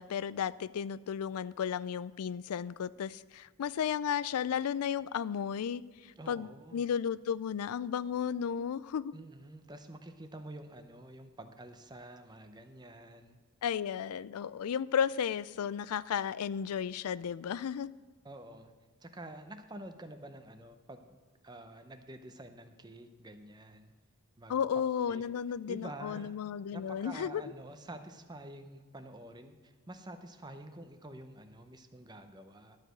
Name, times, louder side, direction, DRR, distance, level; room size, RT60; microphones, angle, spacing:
voice 1, 0.0-5.8 6.3-9.1 13.6-17.9 24.5-27.4, left 8 dB, 85° left, 19 dB, 0.4 m, -34 dB
voice 2, 6.2-6.9 9.1-13.4 18.2-18.7 19.0-21.2 21.4-23.9 24.4-24.5 25.1-25.2 25.7-26.4 26.7-32.8, right 1 dB, 20° right, 8 dB, 0.7 m, -48 dB
12.0 x 5.0 x 7.8 m, 1.4 s
head